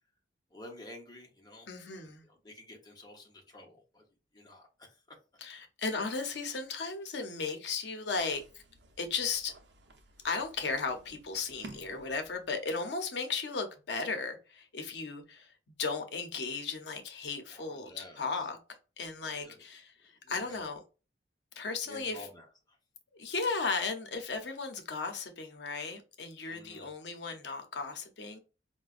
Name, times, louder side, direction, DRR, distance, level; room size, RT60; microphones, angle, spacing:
voice 1, 0.5-1.7 1.9-4.0 4.3-4.9 17.5-18.2 19.4-19.6 20.2-20.6 21.9-22.5 26.4-26.9, left 1 dB, 25° left, 0.9 m, -51 dB
voice 2, 1.7-2.2 5.4-8.6 9.0-9.5 10.2-15.5 15.8-18.6 19.0-20.8 21.6-22.3 23.2-28.4, left 4 dB, 75° left, 0.7 m, -36 dB
sound 1, 8.1-12.9, right 2 dB, 75° right, 0.6 m, -54 dB
4.8 x 2.2 x 2.4 m
head